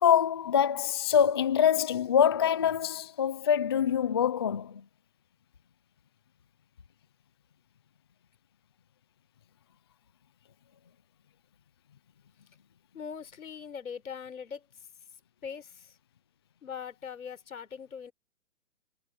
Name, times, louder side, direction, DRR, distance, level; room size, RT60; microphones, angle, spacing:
voice 1, 0.0-4.8, left 8 dB, 20° left, 0.4 m, -25 dB
voice 2, 12.9-14.7 15.4-16.0 16.6-18.1, left 7 dB, 80° left, 5.1 m, -41 dB
hypercardioid pair, 155°, 41 cm